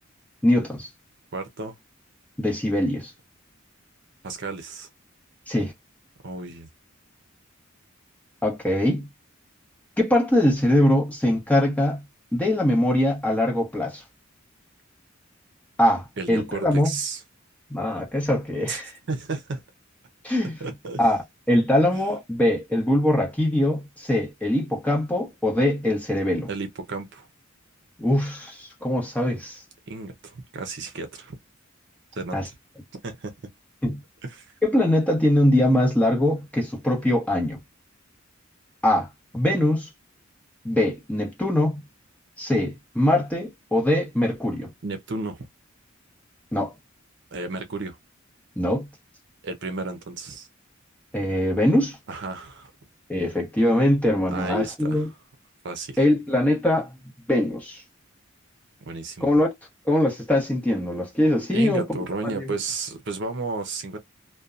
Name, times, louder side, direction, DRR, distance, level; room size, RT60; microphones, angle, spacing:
voice 1, 0.4-0.9 2.4-3.1 5.5-5.7 8.4-9.1 10.0-12.0 12.3-14.0 15.8-16.9 17.7-18.9 20.2-20.6 21.0-21.2 21.5-26.5 28.0-29.6 32.3-32.4 33.8-34.0 34.6-37.6 38.8-39.1 39.3-39.9 40.6-41.8 42.4-44.7 46.5-46.7 48.6-48.9 51.1-52.0 53.1-55.1 56.0-56.9 57.3-57.8 59.2-59.5 59.8-61.8 62.4-62.5, left 1 dB, 5° left, 1.0 m, -22 dB
voice 2, 1.3-1.7 4.2-4.9 6.2-6.7 16.2-17.2 18.7-18.8 19.1-19.6 20.6-21.0 26.5-27.3 29.9-31.3 32.2-32.4 33.0-33.3 34.2-34.5 44.8-45.5 47.3-48.0 49.4-50.5 52.1-52.7 54.3-55.1 55.6-56.0 58.9-59.3 61.5-64.0, right 3 dB, 60° right, 0.6 m, -32 dB
2.7 x 2.2 x 2.4 m
head